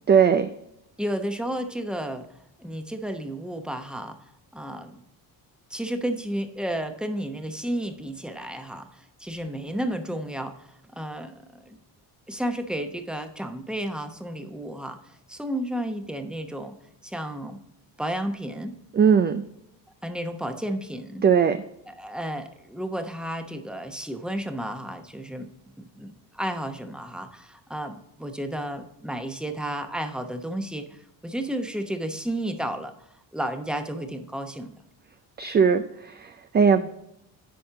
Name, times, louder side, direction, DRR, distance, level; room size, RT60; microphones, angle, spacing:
voice 1, 0.1-0.5 18.9-19.4 21.2-21.6 35.4-36.9, right 6 dB, 25° right, 9 dB, 0.4 m, -19 dB
voice 2, 1.0-2.2 2.6-5.0 5.7-11.8 12.3-16.7 17.0-17.6 18.0-18.8 20.0-21.2 21.9-25.5 25.8-32.9 33.3-34.8 36.8-36.9, right 1 dB, ahead, 6 dB, 0.9 m, -32 dB
10.5 x 4.3 x 3.7 m, 0.80 s
cardioid pair, 85°, 42 cm